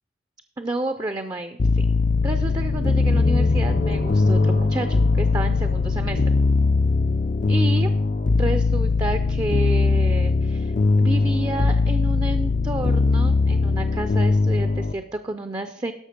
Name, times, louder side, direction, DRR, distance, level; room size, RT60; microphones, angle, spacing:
voice 1, 0.6-1.9 2.2-6.2 7.5-7.9 8.4-10.7 11.0-15.9, right 2 dB, 20° right, 8 dB, 0.4 m, -30 dB
sound 1, 1.6-14.9, left 3 dB, 40° left, 0.4 m, -20 dB
sound 2, 3.0-6.8, left 2 dB, 60° left, 0.8 m, -30 dB
11.5 x 6.3 x 5.2 m, 0.82 s
head